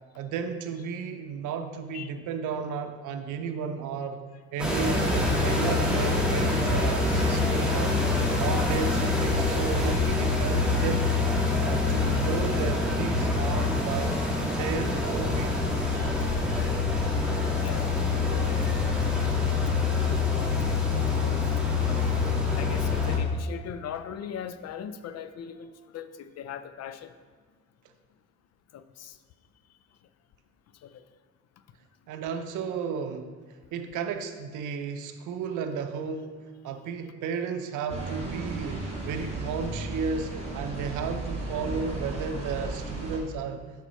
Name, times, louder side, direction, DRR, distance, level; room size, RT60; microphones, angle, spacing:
voice 1, 0.1-4.2 4.5-8.1 8.4-11.1 11.6-14.2 14.5-15.6 32.1-33.4 33.7-43.6, right 5 dB, 85° right, 0.6 m, -33 dB
sound 1, 4.6-23.2, left 3 dB, 5° right, 1.4 m, -25 dB
voice 2, 17.6-19.1 19.9-21.4 22.6-27.1 28.7-29.1, left 8 dB, 60° left, 0.5 m, -40 dB
sound 2, 37.9-43.2, right 2 dB, 20° right, 2.0 m, -35 dB
8.0 x 5.6 x 3.0 m
cardioid pair, 90°, 30 cm